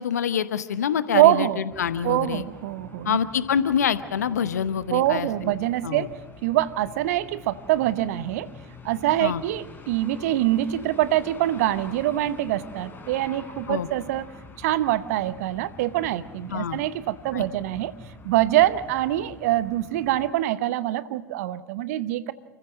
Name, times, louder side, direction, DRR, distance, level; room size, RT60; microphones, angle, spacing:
voice 1, 0.0-2.4 3.0-5.5 5.8-6.1 9.2-9.4 13.7-13.9 16.5-16.8 17.3-17.5, left 8 dB, 80° left, 14 dB, 0.9 m, -26 dB
voice 2, 1.1-1.6 2.0-3.2 4.9-6.1 6.4-8.5 8.8-14.3 14.6-17.9 18.2-22.3, right 14 dB, 70° right, 15 dB, 0.9 m, -24 dB
sound 1, 1.7-20.3, left 4 dB, 25° left, 4.1 m, -46 dB
29.0 x 15.0 x 6.3 m, 1.2 s
figure-of-eight pair, 70°, 9 cm